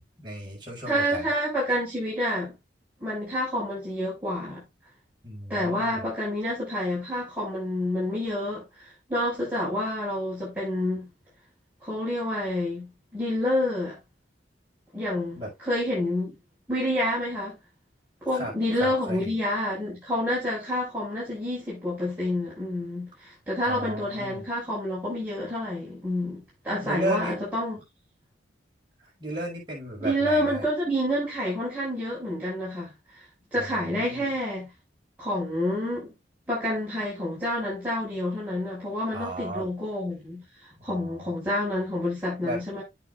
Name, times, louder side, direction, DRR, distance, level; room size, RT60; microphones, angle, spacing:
voice 1, 0.2-1.2 5.2-6.0 15.3-15.5 18.3-18.5 18.8-19.3 23.6-24.5 26.7-27.4 29.0-30.7 33.5-34.3 39.1-39.7 40.9-41.3 42.4-42.6, right 1 dB, 25° right, 5.7 m, -34 dB
voice 2, 0.9-2.5 3.0-4.6 5.5-11.1 11.8-14.0 14.9-16.4 16.7-17.6 18.2-27.8 30.0-33.2 33.5-34.7 35.2-36.1 36.5-42.8, left 1 dB, 10° right, 6.4 m, -28 dB
9.1 x 9.0 x 2.6 m
head